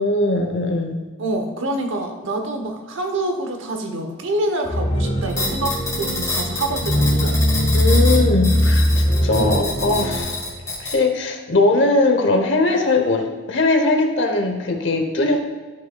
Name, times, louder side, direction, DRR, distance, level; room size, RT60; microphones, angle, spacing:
voice 1, 0.0-1.0 7.7-10.4 10.8-15.5, left 2 dB, 60° left, 4 dB, 0.8 m, -20 dB
voice 2, 1.2-7.3 9.3-9.7, right 1 dB, 65° right, 4 dB, 1.0 m, -26 dB
sound 1, 4.6-10.2, equal, 40° left, 1.7 m, -20 dB
sound 2, 5.3-10.9, left 3 dB, 15° left, 1.1 m, -28 dB
11.5 x 5.5 x 2.3 m, 1.4 s
head